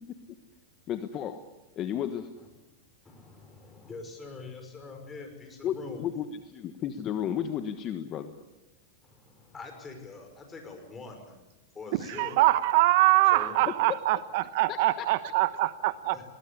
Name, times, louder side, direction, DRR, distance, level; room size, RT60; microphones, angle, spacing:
voice 1, 0.9-1.4 1.8-2.3 5.6-8.3 13.9-14.0 14.7-15.3, left 9 dB, 35° left, 9 dB, 1.3 m, -33 dB
voice 2, 3.0-6.0 9.0-11.3 11.7-12.4 13.3-13.7 16.1-16.2, left 4 dB, 15° left, 5 dB, 5.7 m, -44 dB
voice 3, 11.9-16.2, right 18 dB, 55° right, 15 dB, 1.0 m, -24 dB
21.0 x 18.5 x 10.0 m, 1.1 s
supercardioid pair, 135°, 0 cm